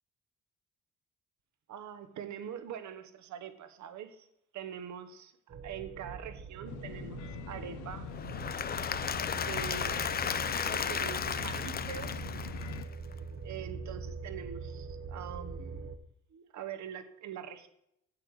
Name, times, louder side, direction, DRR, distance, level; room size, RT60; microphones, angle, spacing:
voice 1, 1.7-4.3 4.5-8.1 9.3-10.4 10.7-12.3 13.4-15.9 16.3-17.7, right 9 dB, 70° right, 1.1 m, -44 dB
sound 1, 5.5-16.0, right 5 dB, 45° right, 0.8 m, -43 dB
sound 2, 6.7-12.9, left 11 dB, 85° left, 0.6 m, -43 dB
Applause / Crowd, 8.1-13.1, left 7 dB, 30° left, 0.5 m, -34 dB
8.4 x 8.0 x 4.8 m
cardioid pair, 90°, 30 cm